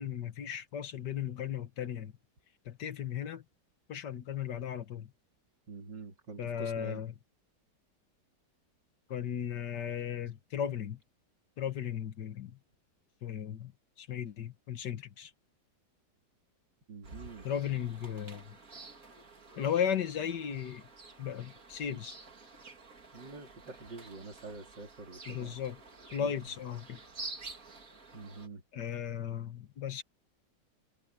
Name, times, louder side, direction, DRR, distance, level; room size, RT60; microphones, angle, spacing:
voice 1, 0.0-2.1 2.7-3.4 3.9-5.1 6.4-7.1 9.1-11.0 11.6-12.6 13.2-13.7 14.0-15.3 17.4-18.6 19.6-20.9 21.2-22.2 25.3-25.8 26.1-27.0 28.7-30.0, left 9 dB, 70° left, 1.8 m, -36 dB
voice 2, 5.7-7.0 16.9-17.5 17.7-17.9 21.9-22.0 23.1-25.6 26.2-26.3 28.1-28.6, right 3 dB, 80° right, 4.4 m, -46 dB
sound 1, 17.0-28.5, right 3 dB, 50° right, 3.0 m, -50 dB
omnidirectional pair, 1.9 m